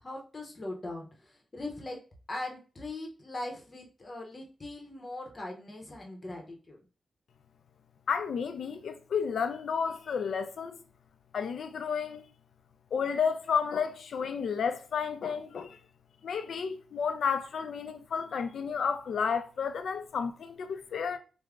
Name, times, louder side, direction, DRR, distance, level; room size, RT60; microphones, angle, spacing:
voice 1, 0.0-2.0 2.3-6.8, left 2 dB, 25° left, 0.7 m, -40 dB
voice 2, 8.1-10.8 11.3-12.3 12.9-15.8 16.2-21.2, left 6 dB, 70° left, 0.4 m, -31 dB
3.4 x 2.0 x 3.5 m
wide cardioid pair, 165°, 0 cm